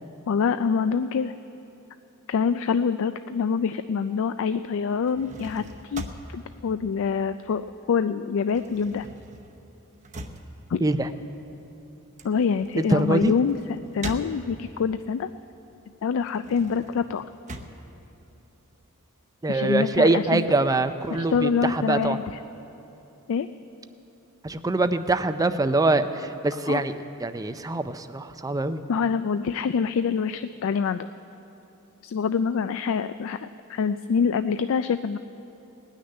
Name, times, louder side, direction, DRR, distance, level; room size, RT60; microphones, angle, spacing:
voice 1, 0.3-1.3 2.3-6.0 6.3-9.1 10.7-10.8 12.2-13.6 13.9-15.3 16.0-17.2 19.5-20.4 21.1-22.4 23.3-23.5 26.7-26.8 28.9-31.1 32.0-33.4 33.7-35.2, left 6 dB, 65° left, 11 dB, 0.3 m, -25 dB
sound 1, 4.9-7.8 8.1-14.9 15.3-18.9, right 1 dB, 35° right, 0.8 m, -42 dB
voice 2, 12.8-13.3 19.4-22.2 24.4-26.9 27.2-28.8, right 2 dB, 15° right, 10 dB, 0.5 m, -24 dB
19.0 x 6.5 x 9.8 m, 3.0 s
head